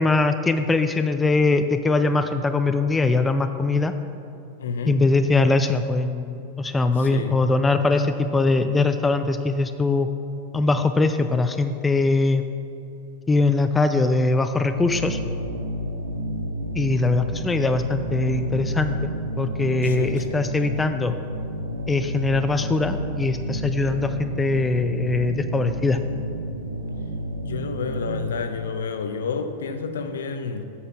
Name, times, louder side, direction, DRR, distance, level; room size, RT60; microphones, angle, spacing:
voice 1, 0.0-3.9 4.8-10.1 10.5-12.4 13.3-15.2 16.8-21.2 21.9-26.0, left 3 dB, 10° left, 8 dB, 0.4 m, -22 dB
voice 2, 4.6-5.0 7.0-7.4 8.0-8.1 19.8-20.4 27.4-30.7, left 5 dB, 65° left, 8 dB, 0.6 m, -30 dB
sound 1, 14.8-28.3, equal, 80° right, 0.6 m, -30 dB
8.5 x 5.6 x 6.0 m, 2.7 s
figure-of-eight pair, 90°, 0 cm